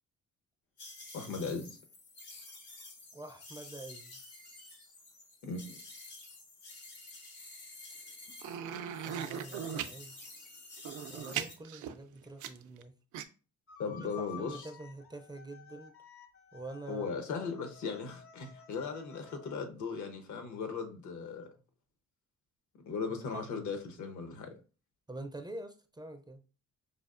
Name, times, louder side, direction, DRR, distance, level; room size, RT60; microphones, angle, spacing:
sound 1, 0.8-8.6 8.9-11.5, left 2 dB, 90° left, 1.4 m, -50 dB
voice 1, 1.1-1.8 5.4-5.8 13.8-14.7 16.9-21.5 22.9-24.5, left 5 dB, 75° left, 0.9 m, -38 dB
voice 2, 3.1-4.9 9.0-10.5 11.1-12.9 13.9-15.9 16.5-17.0 23.3-23.4 25.1-26.4, right 2 dB, 15° right, 0.4 m, -46 dB
sound 2, 8.4-9.9 10.8-12.8 13.1-13.2, right 9 dB, 75° right, 0.5 m, -38 dB
sound 3, 13.7-19.6, left 7 dB, 50° left, 0.6 m, -53 dB
5.0 x 2.3 x 2.5 m
cardioid pair, 90°, 30 cm